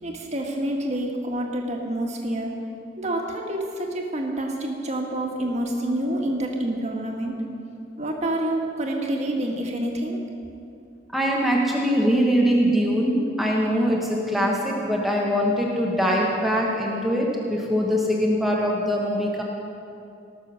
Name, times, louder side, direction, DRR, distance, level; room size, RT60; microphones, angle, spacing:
voice 1, 0.0-2.5 3.0-7.4 8.0-10.2, right 1 dB, 40° right, 0 dB, 1.6 m, -27 dB
voice 2, 11.1-19.4, equal, ahead, -3 dB, 1.2 m, -22 dB
19.0 x 6.6 x 6.3 m, 2.6 s
head